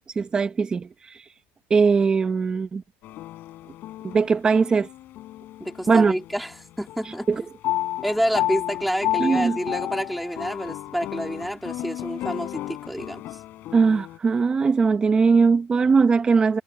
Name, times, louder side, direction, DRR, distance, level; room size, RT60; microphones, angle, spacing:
voice 1, 0.1-0.9 1.7-2.8 4.0-4.9 5.9-6.1 7.3-7.4 9.2-9.6 13.7-16.6, right 5 dB, 15° right, 1.7 m, -20 dB
sound 1, 3.0-6.5 6.9-14.2, left 14 dB, 40° left, 5.0 m, -32 dB
voice 2, 5.6-7.4 8.0-13.2, equal, ahead, 3.5 m, -28 dB
cardioid pair, 175°, 5 cm